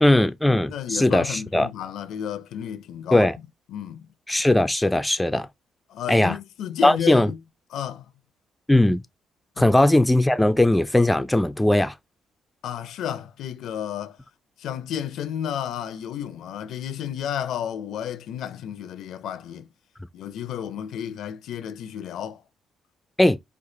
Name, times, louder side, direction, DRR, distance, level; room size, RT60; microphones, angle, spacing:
voice 1, 0.0-1.7 3.1-3.4 4.3-5.5 6.1-6.4 6.8-7.3 8.7-9.0 9.6-11.9 23.2-23.4, left 1 dB, 10° left, 0.5 m, -19 dB
voice 2, 0.7-3.3 3.7-4.1 5.9-7.4 7.7-8.1 9.6-9.7 12.6-14.2 14.6-19.7 20.1-22.4, left 9 dB, 80° left, 0.6 m, -32 dB
4.6 x 2.4 x 3.8 m
cardioid pair, 90°, 0 cm